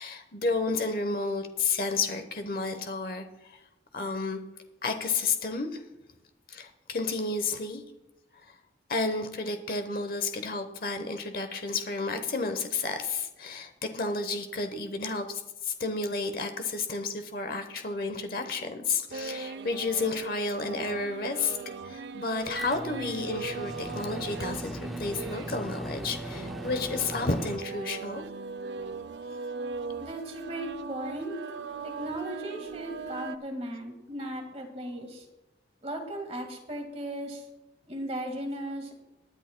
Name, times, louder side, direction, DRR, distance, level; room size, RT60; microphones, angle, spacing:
voice 1, 0.0-3.6 3.9-4.4 4.8-5.8 6.5-7.8 8.3-8.5 8.9-21.6 21.8-28.2, left 3 dB, 55° left, 7 dB, 0.9 m, -31 dB
sound 1, 19.1-33.4, right 4 dB, 80° right, 0.5 m, -39 dB
Microwave oven, 22.5-27.6, equal, ahead, 0.4 m, -39 dB
voice 2, 30.0-31.3 31.8-35.3 35.8-37.5 37.9-38.9, right 1 dB, 35° right, 3 dB, 1.7 m, -36 dB
22.0 x 10.0 x 2.2 m, 0.97 s
head